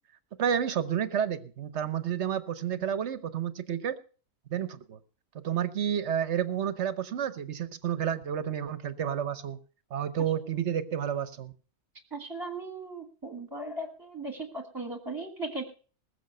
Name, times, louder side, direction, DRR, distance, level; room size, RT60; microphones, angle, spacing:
voice 1, 0.4-3.9 4.5-5.0 5.4-9.6 9.9-11.5, right 9 dB, 50° right, 12 dB, 1.2 m, -30 dB
voice 2, 12.1-15.7, right 2 dB, 15° right, 4 dB, 1.6 m, -37 dB
20.0 x 7.0 x 5.5 m, 0.40 s
omnidirectional pair, 1.6 m